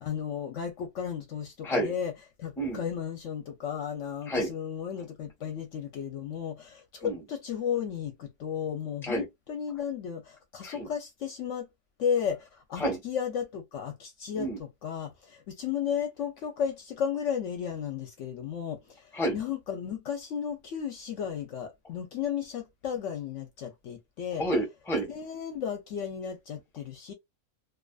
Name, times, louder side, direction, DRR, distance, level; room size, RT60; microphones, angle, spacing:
voice 1, 0.0-2.1 2.4-11.7 12.0-24.4 25.1-27.1, left 8 dB, 65° left, 0.8 m, -34 dB
voice 2, 24.4-25.1, right 1 dB, ahead, 0.7 m, -29 dB
2.5 x 2.4 x 2.2 m
omnidirectional pair, 1.5 m